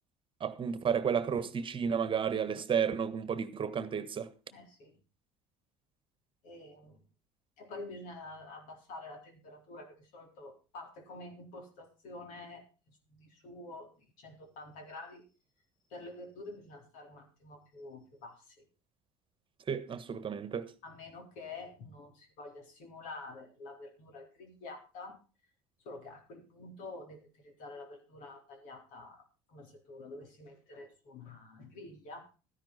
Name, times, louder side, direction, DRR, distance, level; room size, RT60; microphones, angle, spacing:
voice 1, 0.4-4.3 19.7-20.7, right 7 dB, 35° right, 1.4 m, -32 dB
voice 2, 4.5-5.0 6.4-7.0 7.6-15.2 15.9-18.6 20.8-25.2 25.8-32.3, left 2 dB, 65° left, 4.1 m, -48 dB
13.5 x 10.5 x 4.1 m
hypercardioid pair, 75°, 14 cm